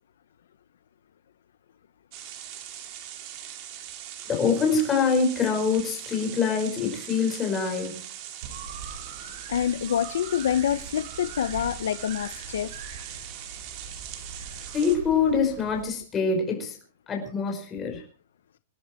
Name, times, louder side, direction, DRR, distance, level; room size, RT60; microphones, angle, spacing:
sound 1, 2.1-15.0, right 11 dB, 30° right, 2.2 m, -41 dB
voice 1, 4.3-8.0 14.7-16.8 17.1-18.0, left 5 dB, 10° left, 5.4 m, -25 dB
sound 2, 8.4-15.8, right 5 dB, 45° right, 5.2 m, -42 dB
voice 2, 9.5-12.7, left 9 dB, 70° left, 1.0 m, -26 dB
27.0 x 10.5 x 4.5 m
supercardioid pair, 180°, 0 cm